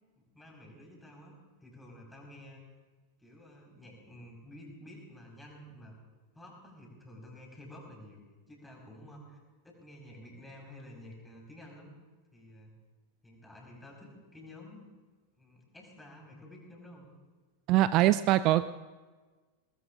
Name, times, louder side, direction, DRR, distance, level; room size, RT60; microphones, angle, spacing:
voice 1, 0.2-2.6 3.2-5.9 6.3-9.4 9.6-11.9 12.3-12.7 13.2-14.8 15.3-17.1, left 1 dB, 5° left, -1 dB, 4.8 m, -51 dB
voice 2, 17.7-18.8, right 15 dB, 40° right, 14 dB, 0.3 m, -24 dB
22.0 x 19.5 x 2.5 m, 1.3 s
figure-of-eight pair, 90°, 0 cm